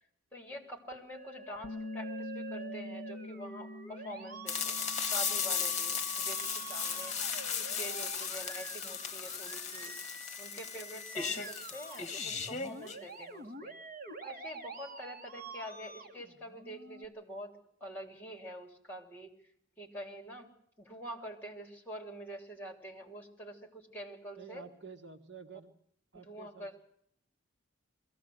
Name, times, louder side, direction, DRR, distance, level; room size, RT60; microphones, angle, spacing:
voice 1, 0.3-7.2 7.6-9.9 10.4-13.8 14.2-17.5 17.8-19.3 19.8-20.5 20.8-24.6 26.2-26.8, equal, 10° left, 2 dB, 3.4 m, -46 dB
Musical instrument, 1.1-17.1, right 4 dB, 45° right, 2.0 m, -47 dB
Bass guitar, 1.6-6.0 6.3-7.9, left 3 dB, 70° left, 0.7 m, -46 dB
sound 1, 4.5-13.0, left 6 dB, 35° left, 1.4 m, -36 dB
voice 2, 24.4-25.7 26.1-26.8, right 5 dB, 60° right, 5 dB, 1.7 m, -50 dB
22.0 x 16.0 x 7.9 m, 0.68 s
head